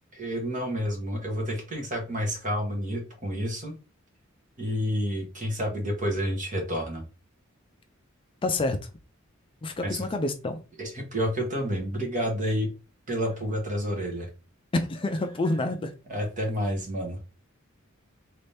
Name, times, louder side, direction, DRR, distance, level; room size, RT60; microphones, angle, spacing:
voice 1, 0.1-3.7 4.6-7.0 9.8-10.1 10.8-12.7 13.1-14.3 16.1-17.2, equal, 40° right, 1.3 m, -29 dB
voice 2, 8.4-8.8 9.6-10.6 14.7-15.9, left 2 dB, 25° left, 0.4 m, -27 dB
3.1 x 2.7 x 3.4 m
head